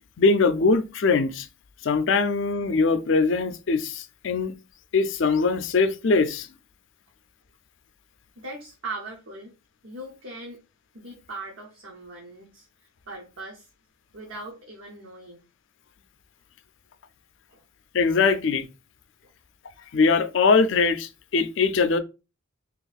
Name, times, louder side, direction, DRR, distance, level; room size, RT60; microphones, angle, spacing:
voice 1, 0.2-1.5 1.8-4.5 4.9-6.5 17.9-18.7 19.9-22.0, left 4 dB, 60° left, 0.4 m, -22 dB
voice 2, 8.4-9.5 9.8-10.6 10.9-12.7 13.1-13.7 14.1-15.4 17.5-17.6, right 2 dB, 75° right, 0.8 m, -39 dB
3.0 x 2.6 x 4.0 m
head